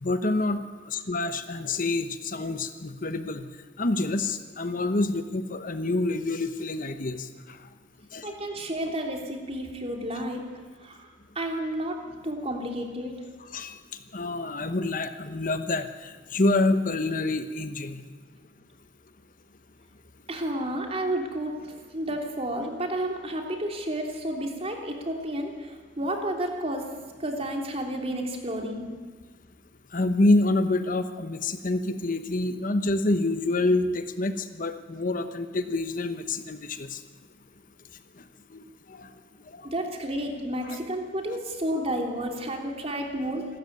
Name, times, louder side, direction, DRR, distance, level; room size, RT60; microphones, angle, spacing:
voice 1, 0.0-3.5 3.8-7.3 8.1-8.3 13.5-13.8 14.1-18.0 29.9-37.0 38.5-38.6 38.9-39.1 39.5-39.6 40.6-40.8, left 2 dB, 45° left, 9 dB, 1.0 m, -27 dB
voice 2, 8.2-10.4 10.8-11.1 11.3-13.2 20.3-26.9 27.2-28.9 39.6-43.5, right 1 dB, 30° right, 2 dB, 3.2 m, -31 dB
27.0 x 13.0 x 9.4 m, 1.5 s
head